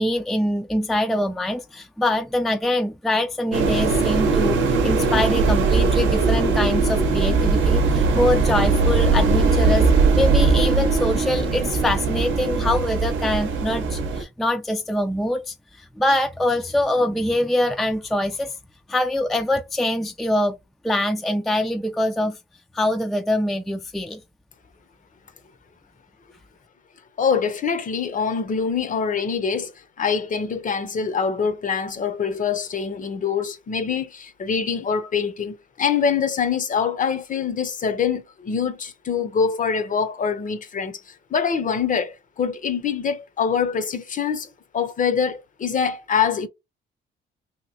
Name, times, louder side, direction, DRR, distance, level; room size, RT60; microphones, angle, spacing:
voice 1, 0.0-9.9 10.2-18.5 18.9-20.6 20.8-22.4 22.7-24.2, left 1 dB, ahead, 0.3 m, -24 dB
sound 1, 3.5-14.2, right 4 dB, 75° right, 0.8 m, -20 dB
voice 2, 27.2-29.7 30.0-46.5, left 6 dB, 40° left, 0.6 m, -24 dB
2.9 x 2.7 x 2.7 m
cardioid pair, 90°, 20 cm